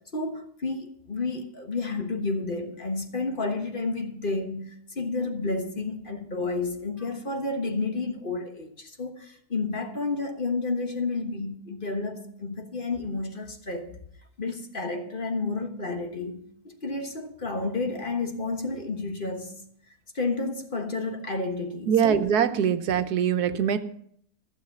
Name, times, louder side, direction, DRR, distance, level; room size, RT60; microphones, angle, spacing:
voice 1, 0.1-13.9 14.4-19.6 20.1-22.3, left 3 dB, 35° left, 1.4 m, -31 dB
voice 2, 21.9-23.8, right 8 dB, 90° right, 1.4 m, -23 dB
14.5 x 7.2 x 7.0 m
omnidirectional pair, 1.6 m